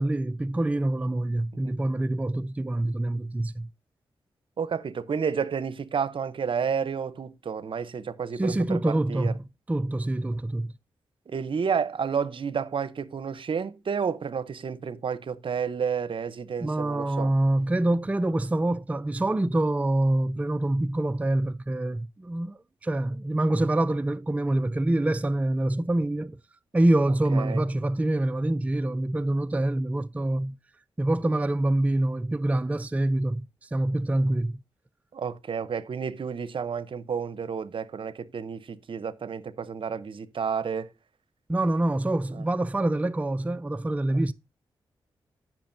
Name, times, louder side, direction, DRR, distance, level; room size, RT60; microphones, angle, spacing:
voice 1, 0.0-3.7 8.4-10.7 16.6-26.4 26.7-30.6 31.0-34.5 41.5-44.3, right 1 dB, 15° right, 0.4 m, -26 dB
voice 2, 4.6-9.3 11.3-17.3 27.3-27.6 35.1-40.9 42.3-42.4, right 6 dB, 60° right, 0.7 m, -31 dB
13.0 x 6.1 x 2.6 m
cardioid pair, 55°, 10 cm